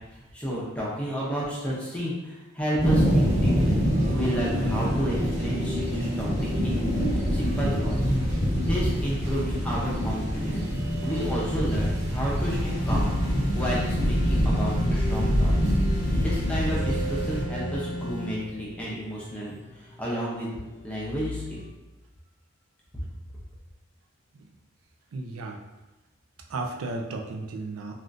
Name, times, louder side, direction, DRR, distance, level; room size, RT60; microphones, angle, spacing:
voice 1, 0.3-3.8 4.1-6.8 7.1-8.1 8.5-10.6 11.0-15.5 16.1-20.6 20.8-21.6, equal, 5° left, -7 dB, 0.6 m, -31 dB
sound 1, 2.8-17.4, equal, 10° right, 1.1 m, -25 dB
sound 2, 3.1-21.7, left 1 dB, 35° left, 0.8 m, -39 dB
sound 3, 12.7-18.4, equal, 55° left, 0.3 m, -37 dB
voice 2, 25.1-25.6 26.5-27.9, right 2 dB, 85° right, 2 dB, 0.4 m, -34 dB
3.5 x 2.4 x 2.5 m, 1.1 s
head